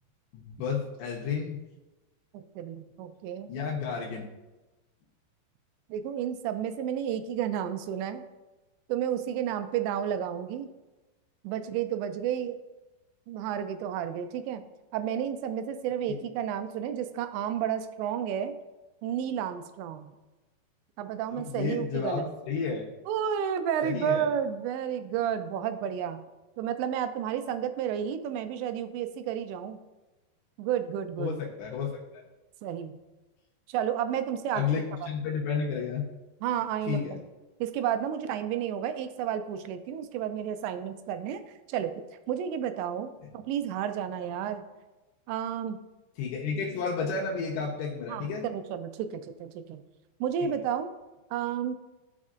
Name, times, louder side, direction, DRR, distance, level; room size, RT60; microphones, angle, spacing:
voice 1, 0.3-1.6 3.5-4.3 16.1-16.2 21.3-22.9 23.8-24.3 31.2-32.2 34.5-36.0 36.9-37.2 46.2-48.4 50.4-50.5, left 6 dB, 80° left, -4 dB, 3.3 m, -32 dB
voice 2, 2.3-3.5 5.9-8.2 8.9-10.7 11.4-12.6 13.3-14.6 14.9-18.5 19.0-20.1 21.0-22.3 23.1-26.2 26.6-29.8 30.6-31.4 32.6-33.0 33.7-34.6 35.0-35.1 36.4-37.2 37.6-41.4 41.7-41.9 42.3-43.1 43.3-44.7 45.3-45.8 48.1-49.8 50.2-50.9 51.3-51.8, right 9 dB, 85° right, 9 dB, 2.8 m, -31 dB
15.0 x 5.3 x 2.5 m, 1.1 s
omnidirectional pair, 5.1 m